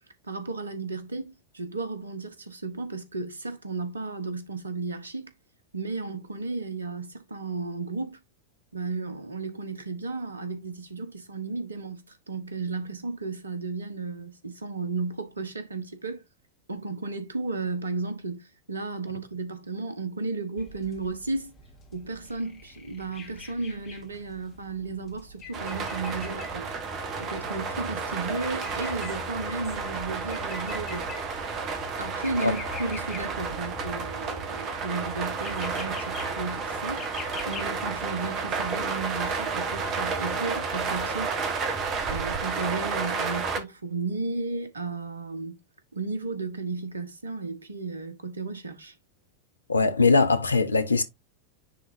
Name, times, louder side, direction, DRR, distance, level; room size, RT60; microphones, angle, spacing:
voice 1, 0.2-5.3 5.7-8.2 8.7-16.2 16.7-21.5 21.9-26.7 27.2-31.1 32.0-37.1 37.5-41.4 42.1-45.6 45.9-48.9, right 3 dB, 75° right, 1.2 m, -34 dB
sound 1, 20.6-37.6, left 4 dB, 30° left, 2.2 m, -45 dB
sound 2, 25.5-43.6, right 4 dB, 35° right, 1.4 m, -31 dB
voice 2, 49.7-51.0, left 4 dB, 80° left, 0.8 m, -21 dB
9.9 x 3.8 x 2.6 m
figure-of-eight pair, 90°, 0 cm